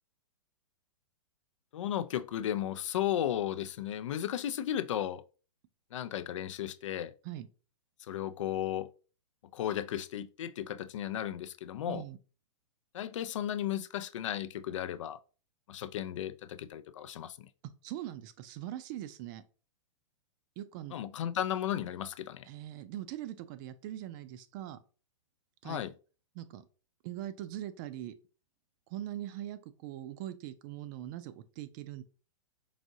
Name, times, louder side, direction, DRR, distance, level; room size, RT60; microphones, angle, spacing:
voice 1, 1.7-5.2 5.9-7.1 8.0-8.9 9.5-12.0 12.9-15.2 15.7-17.5 20.9-22.5 25.6-25.9, left 11 dB, 70° left, 0.4 m, -35 dB
voice 2, 17.8-19.4 20.6-20.9 22.4-24.8 25.6-25.8 26.3-26.6 27.0-28.1 28.9-32.0, right 12 dB, 40° right, 0.5 m, -41 dB
4.8 x 2.6 x 2.7 m
hypercardioid pair, 125°, 17 cm